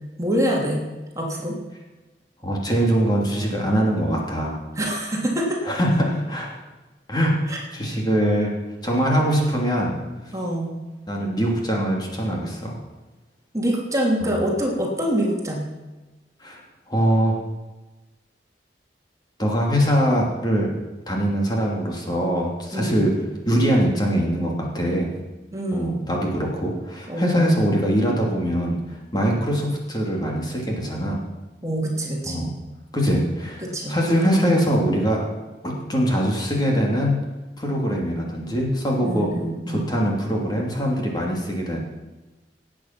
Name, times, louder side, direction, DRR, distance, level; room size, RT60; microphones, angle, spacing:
voice 1, 0.2-0.8 1.2-1.6 4.8-5.6 7.5-7.6 10.3-10.7 13.5-15.6 22.7-23.0 25.5-26.0 27.1-27.4 31.6-32.5 33.6-34.0 34.3-34.7 39.0-39.9, right 1 dB, 20° right, -2 dB, 2.8 m, -25 dB
voice 2, 2.4-4.6 5.6-6.5 7.1-8.6 8.8-10.0 11.1-12.8 14.2-14.4 16.4-16.6 16.9-17.4 19.4-20.7 21.1-23.2 23.5-25.1 25.7-31.2 32.3-32.5 32.9-35.3 35.6-37.3 37.6-39.3 39.7-41.8, equal, 25° left, -1 dB, 2.8 m, -22 dB
19.0 x 8.8 x 6.0 m, 1.1 s
head